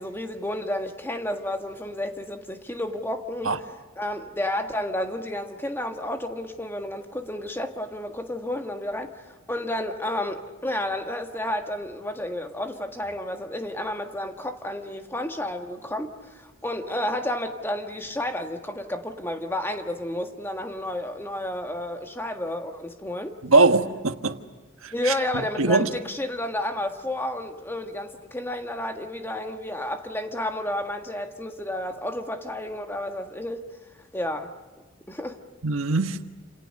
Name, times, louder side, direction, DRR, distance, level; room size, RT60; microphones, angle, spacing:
voice 1, 0.0-23.3 24.9-33.6 34.1-34.5 35.1-35.4, left 1 dB, 10° left, 1.6 m, -31 dB
voice 2, 23.4-24.4 24.8-25.1 25.6-25.9 35.6-36.2, right 3 dB, 75° right, 1.4 m, -21 dB
29.0 x 27.5 x 6.6 m
head